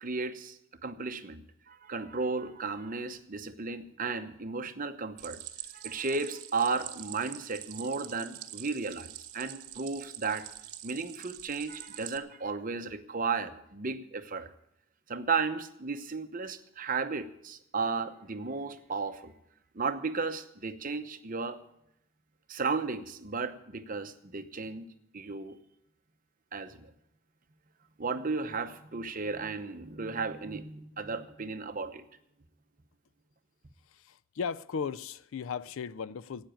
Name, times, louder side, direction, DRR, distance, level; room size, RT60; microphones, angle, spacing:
voice 1, 0.0-5.4 5.7-9.1 9.3-10.5 10.8-14.5 15.1-19.3 19.7-21.6 22.5-24.9 25.1-25.6 26.5-26.9 28.0-32.0, right 4 dB, 40° right, 0.8 m, -34 dB
Stream, 5.2-12.2, right 13 dB, 85° right, 0.9 m, -45 dB
voice 2, 33.9-36.5, left 6 dB, 65° left, 0.4 m, -36 dB
12.0 x 9.0 x 9.0 m
head